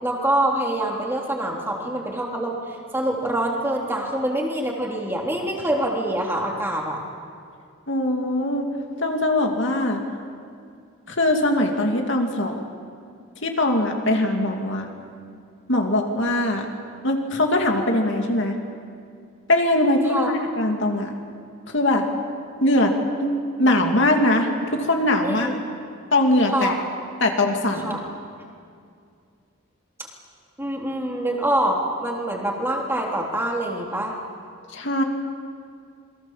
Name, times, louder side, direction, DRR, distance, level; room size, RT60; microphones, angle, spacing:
voice 1, 0.0-7.0 20.0-20.3 25.2-25.5 26.5-26.7 27.8-28.0 30.6-34.1, right 1 dB, 10° right, -1 dB, 3.4 m, -25 dB
voice 2, 7.9-8.7 9.0-10.0 11.1-12.6 13.4-14.9 15.7-16.7 17.0-18.6 19.5-21.1 21.7-22.1 22.6-22.9 23.2-25.6 26.1-26.8 27.2-28.0 34.7-35.0, left 1 dB, 60° left, 2 dB, 2.7 m, -21 dB
28.0 x 23.0 x 7.5 m, 2.3 s
head